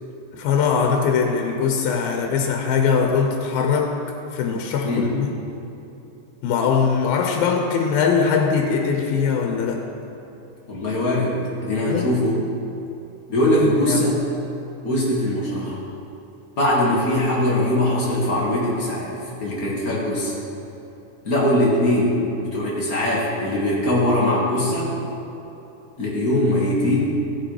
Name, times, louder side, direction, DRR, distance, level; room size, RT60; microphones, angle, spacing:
voice 1, 0.3-3.9 4.3-5.3 6.4-9.8 11.9-12.1 13.6-14.0, left 6 dB, 85° left, 2 dB, 2.7 m, -21 dB
voice 2, 10.7-11.4 11.6-12.4 13.3-14.2 14.8-15.8 16.6-19.1 19.4-20.3 21.2-24.9 26.0-27.2, left 1 dB, 40° left, -5 dB, 1.4 m, -21 dB
15.5 x 6.5 x 4.9 m, 3.0 s
omnidirectional pair, 4.1 m